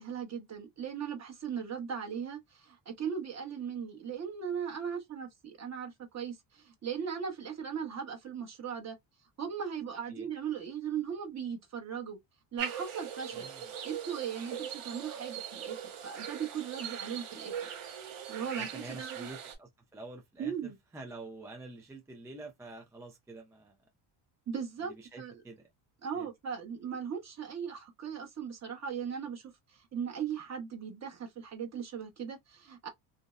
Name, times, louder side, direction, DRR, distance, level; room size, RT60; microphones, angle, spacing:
voice 1, 0.0-9.0 9.4-12.2 12.5-13.5 13.8-15.8 16.0-17.5 18.0-19.3 20.4-20.8 24.5-24.9 25.2-25.4 26.0-32.9, right 7 dB, 35° right, 0.9 m, -38 dB
sound 1, 12.6-19.5, right 8 dB, 85° right, 1.2 m, -41 dB
voice 2, 13.3-13.7 18.6-23.8 24.8-25.7 26.1-26.3, right 2 dB, 5° right, 0.4 m, -47 dB
2.6 x 2.0 x 2.3 m
cardioid pair, 110°, 48 cm